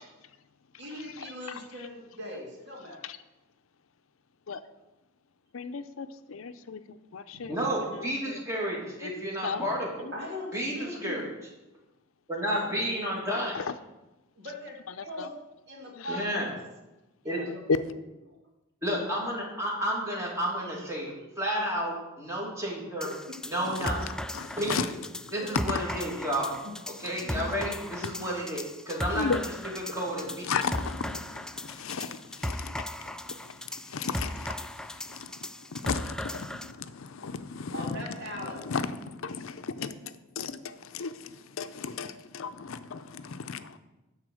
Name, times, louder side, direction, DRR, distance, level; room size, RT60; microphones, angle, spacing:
voice 1, 0.8-3.0 10.1-11.2 12.4-13.5 14.4-15.4 15.7-16.6 17.2-17.6 18.3-18.4 20.6-20.8 23.0-23.1 25.4-25.5 26.6-26.7 27.3-27.7 37.7-38.6, left 1 dB, 60° right, 2.5 m, -40 dB
voice 2, 5.5-7.5 7.8-8.4 9.0-9.1 9.4-9.7 10.0-10.1 13.5-13.7 15.0-15.3 16.0-16.2 23.7-23.9 24.3-24.9 25.7-25.9 27.0-27.4 28.0-28.1 29.1-29.4 30.4-43.8, left 5 dB, 85° left, 0.6 m, -36 dB
voice 3, 7.5-10.1 10.5-11.3 12.3-13.6 16.1-16.5 17.2-17.4 18.8-23.1 23.4-24.0 24.6-24.9 25.3-26.5 27.0-30.3, equal, 15° right, 2.5 m, -31 dB
sound 1, 23.0-36.7, left 1 dB, 5° left, 0.3 m, -37 dB
11.0 x 4.1 x 7.7 m
head